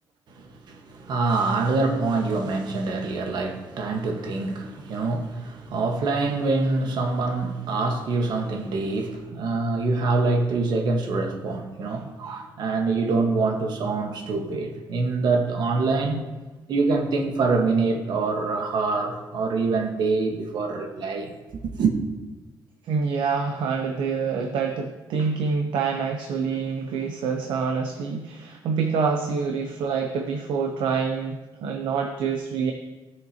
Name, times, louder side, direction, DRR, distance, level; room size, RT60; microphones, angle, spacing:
voice 1, 0.3-16.3 16.7-21.9, right 3 dB, 65° right, 1.3 m, -25 dB
voice 2, 22.8-32.7, right 5 dB, 85° right, 0.7 m, -26 dB
16.0 x 6.6 x 2.8 m
cardioid pair, 125°, 8 cm